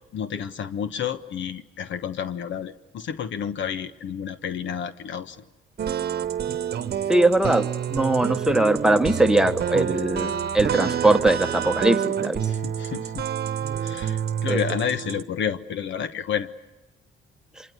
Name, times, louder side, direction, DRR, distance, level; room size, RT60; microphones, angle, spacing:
voice 1, 0.1-5.4 12.5-13.3 13.8-16.5, left 8 dB, 70° left, 11 dB, 1.2 m, -30 dB
sound 1, 5.8-15.2, right 8 dB, 55° right, 1.1 m, -28 dB
voice 2, 7.1-12.4 14.5-14.6, right 2 dB, 5° right, 6 dB, 1.4 m, -21 dB
26.0 x 24.5 x 8.2 m, 1.1 s
cardioid pair, 90°, 20 cm